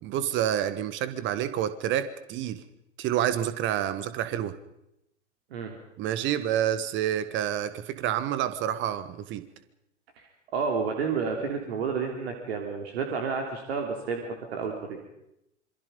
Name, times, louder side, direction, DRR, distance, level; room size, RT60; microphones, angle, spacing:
voice 1, 0.0-2.6 3.0-4.6 6.0-9.4, right 11 dB, 30° right, 13 dB, 1.4 m, -28 dB
voice 2, 10.2-15.0, right 5 dB, 55° right, 3 dB, 3.5 m, -31 dB
27.0 x 23.5 x 5.3 m, 0.83 s
figure-of-eight pair, 95°, 36 cm